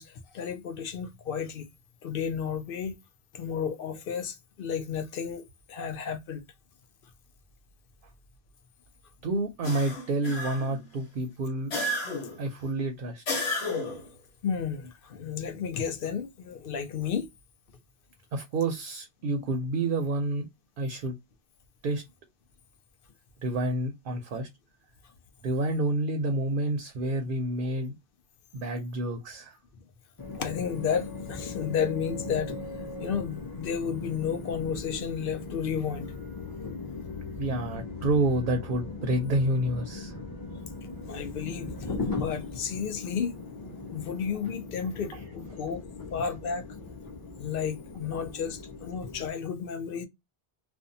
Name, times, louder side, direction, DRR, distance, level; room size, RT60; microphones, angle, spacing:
voice 1, 0.0-1.7 2.0-3.0 3.3-6.4 14.4-17.3 29.8-29.9 30.4-36.1 41.1-43.3 43.9-45.8 46.1-46.6 47.4-50.1, left 7 dB, 65° left, 0.7 m, -32 dB
voice 2, 9.2-11.7 12.4-13.4 18.3-20.5 20.8-21.1 21.8-22.0 23.4-24.5 25.4-27.9 28.5-29.6 37.4-40.2, right 2 dB, 65° right, 0.7 m, -29 dB
sound 1, 9.6-10.8 11.7-12.4 13.3-14.1, left 1 dB, 90° left, 1.2 m, -32 dB
sound 2, 30.2-49.3, left 3 dB, 25° left, 0.7 m, -39 dB
2.5 x 2.2 x 2.6 m
omnidirectional pair, 1.0 m